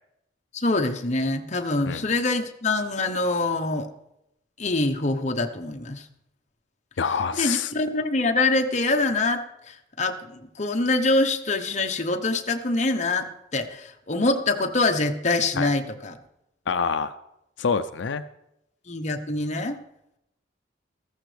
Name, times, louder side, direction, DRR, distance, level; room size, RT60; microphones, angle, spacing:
voice 1, 0.5-3.9 4.6-6.0 7.3-9.4 9.7-13.3 13.5-16.1 18.9-19.8, left 2 dB, 40° left, 5 dB, 1.0 m, -25 dB
voice 2, 7.0-7.7 15.6-15.7 16.7-17.1 17.6-18.2, left 6 dB, 85° left, 10 dB, 0.5 m, -26 dB
14.5 x 14.0 x 3.4 m, 0.84 s
head